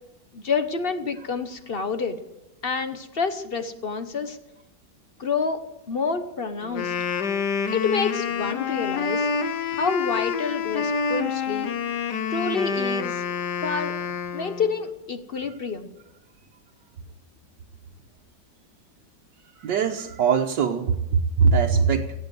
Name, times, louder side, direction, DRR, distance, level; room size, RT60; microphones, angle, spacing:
voice 1, 0.3-2.2 2.6-4.4 5.2-5.6 5.9-6.9 7.7-9.3 9.7-11.7 12.3-13.2 13.6-13.9 14.3-15.9, left 5 dB, 40° left, 9 dB, 1.0 m, -28 dB
Wind instrument woodwind instrument, 6.6-14.8, left 6 dB, 65° left, 1.6 m, -27 dB
voice 2, 19.6-22.1, right 5 dB, 75° right, 0 dB, 1.6 m, -21 dB
15.5 x 8.8 x 9.5 m, 0.92 s
omnidirectional pair, 1.9 m